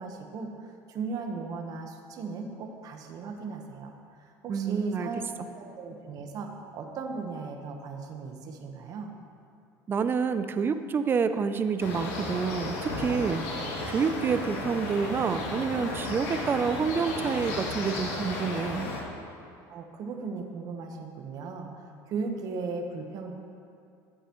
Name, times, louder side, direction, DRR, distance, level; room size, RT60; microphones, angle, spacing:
voice 1, 0.0-9.1 19.7-23.3, right 4 dB, 50° right, 4 dB, 1.1 m, -37 dB
voice 2, 4.5-5.1 9.9-18.9, right 6 dB, 25° right, 10 dB, 0.4 m, -28 dB
sound 1, 11.8-19.0, left 2 dB, 90° left, 2.3 m, -34 dB
13.5 x 8.9 x 3.1 m, 2.5 s
cardioid pair, 130°, 8 cm